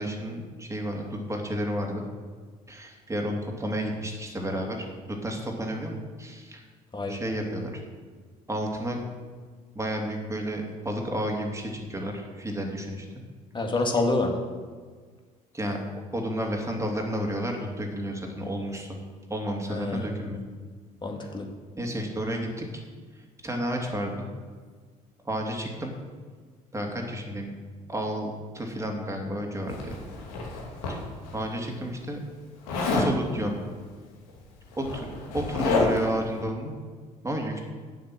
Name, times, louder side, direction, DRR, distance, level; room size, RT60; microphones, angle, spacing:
voice 1, 0.0-2.0 2.7-6.6 7.1-7.8 8.5-9.0 9.7-13.1 15.5-15.8 16.1-18.9 19.3-20.4 21.8-22.8 23.4-24.3 25.2-26.0 26.7-27.5 27.9-29.9 30.9-31.0 31.3-32.2 32.9-33.5 34.8-36.7 37.2-37.6, equal, 15° right, 1 dB, 2.6 m, -31 dB
voice 2, 13.5-14.4 19.7-20.2 21.0-21.5, left 2 dB, 25° left, 3 dB, 2.2 m, -27 dB
Zipper (clothing), 29.7-31.3 32.7-33.1 34.3-34.4 34.7-36.2, left 3 dB, 75° left, 2.4 m, -28 dB
9.4 x 7.9 x 6.3 m, 1.6 s
hypercardioid pair, 60°, 19 cm